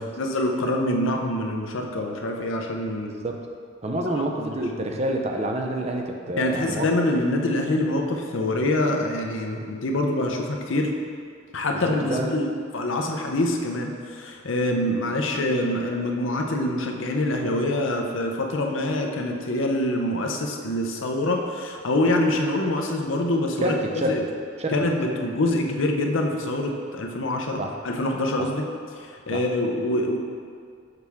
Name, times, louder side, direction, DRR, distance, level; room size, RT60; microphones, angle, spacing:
voice 1, 0.0-3.1 4.1-4.6 6.4-10.9 11.5-12.4 12.7-24.2 24.7-28.7 29.0-30.2, left 1 dB, 65° left, 2 dB, 0.7 m, -25 dB
voice 2, 3.0-3.4 3.8-6.9 11.7-12.3 23.6-24.2 24.6-24.9 27.6-27.7 28.4-28.5 29.3-29.4, right 1 dB, 30° right, 2 dB, 0.5 m, -28 dB
6.7 x 5.8 x 3.5 m, 2.2 s
head